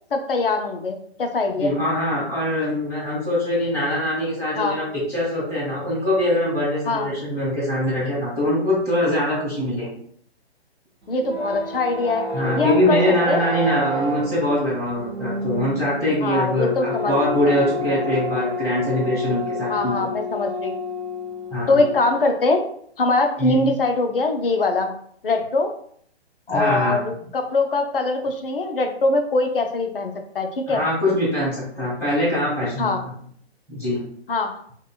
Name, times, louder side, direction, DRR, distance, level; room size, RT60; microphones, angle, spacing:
voice 1, 0.1-1.7 4.6-4.8 6.9-7.1 11.1-12.3 12.5-13.0 13.3-13.4 16.2-17.1 17.4-17.6 19.7-20.8 21.7-22.6 23.0-24.9 25.2-25.7 26.5-30.8 32.8-33.0 34.3-34.5, left 3 dB, 60° left, 5 dB, 0.7 m, -22 dB
voice 2, 1.6-9.9 12.3-19.9 21.5-21.8 23.4-23.6 26.5-27.0 30.7-32.9 33.7-34.0, left 1 dB, 10° left, -8 dB, 1.4 m, -23 dB
sound 1, 11.0-22.3, left 1 dB, 85° right, 0.7 m, -29 dB
5.6 x 2.3 x 2.3 m, 0.62 s
figure-of-eight pair, 130°, 32 cm